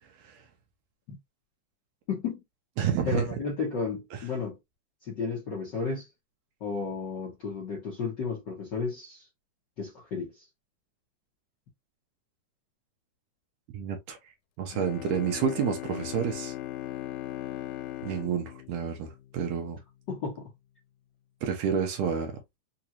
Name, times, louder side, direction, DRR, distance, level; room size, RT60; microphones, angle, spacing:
voice 1, 2.1-2.4 3.1-4.6 5.0-6.1 6.6-9.3 9.8-10.4 20.1-20.5, left 5 dB, 65° left, 1.1 m, -33 dB
voice 2, 2.8-3.2 13.7-14.2 14.6-16.5 18.0-19.8 21.4-22.3, right 7 dB, 75° right, 1.7 m, -29 dB
Bowed string instrument, 14.7-19.6, left 14 dB, 85° left, 2.0 m, -39 dB
4.9 x 2.3 x 2.8 m
omnidirectional pair, 3.4 m